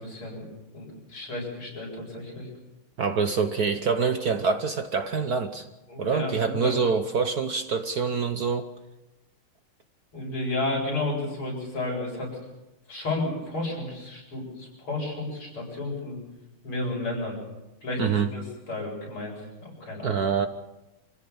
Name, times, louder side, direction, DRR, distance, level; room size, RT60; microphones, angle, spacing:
voice 1, 0.0-2.5 5.9-6.8 10.1-12.3 12.9-16.2 16.6-17.4 17.8-18.0 18.3-18.4 18.7-20.2, left 2 dB, 75° left, -1 dB, 8.7 m, -32 dB
voice 2, 3.0-5.7 6.0-8.7 18.0-18.3 20.0-20.5, right 5 dB, 55° right, 8 dB, 1.2 m, -25 dB
26.0 x 16.0 x 7.1 m, 0.98 s
omnidirectional pair, 2.4 m